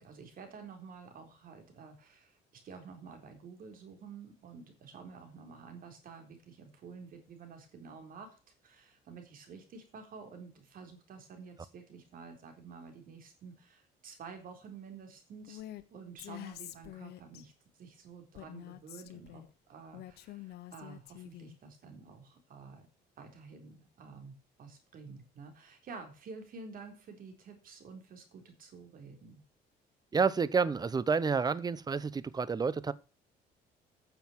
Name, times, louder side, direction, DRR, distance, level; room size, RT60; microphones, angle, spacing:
voice 1, 0.0-15.6 15.9-17.5 17.8-22.9 23.2-29.4, right 5 dB, 55° right, 3.9 m, -50 dB
Female speech woman speaking, 15.5-15.8 16.2-17.4 18.3-19.5 19.9-21.6, left 15 dB, 75° left, 1.1 m, -47 dB
voice 2, 30.1-32.9, right 5 dB, 25° right, 0.8 m, -29 dB
9.6 x 7.0 x 7.3 m
cardioid pair, 110°, 17 cm